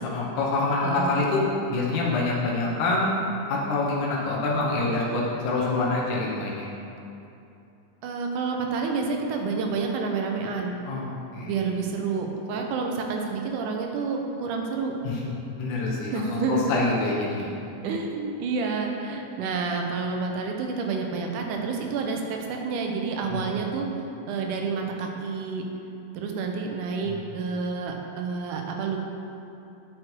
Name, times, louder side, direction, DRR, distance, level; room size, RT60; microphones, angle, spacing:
voice 1, 0.1-3.1 3.5-6.7 10.9-11.6 15.0-17.5 23.2-23.4 27.0-27.2, left 3 dB, 75° left, -4 dB, 2.5 m, -26 dB
voice 2, 0.8-1.2 8.0-10.7 11.4-14.9 16.1-16.7 17.8-23.9 24.3-25.6 26.1-29.0, right 4 dB, 80° right, 2 dB, 2.3 m, -29 dB
9.5 x 6.2 x 4.5 m, 2.8 s
omnidirectional pair, 3.6 m